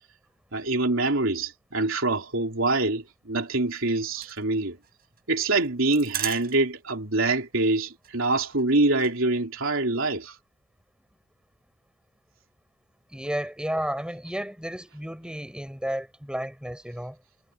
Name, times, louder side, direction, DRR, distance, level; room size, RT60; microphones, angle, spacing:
voice 1, 0.5-4.8 5.3-10.4, right 2 dB, 70° right, 3.4 m, -25 dB
sound 1, 3.6-6.9 7.2-7.3 7.6-7.8 8.0-9.2, right 11 dB, 50° right, 7.0 m, -37 dB
voice 2, 13.1-17.2, equal, 5° right, 5.3 m, -32 dB
head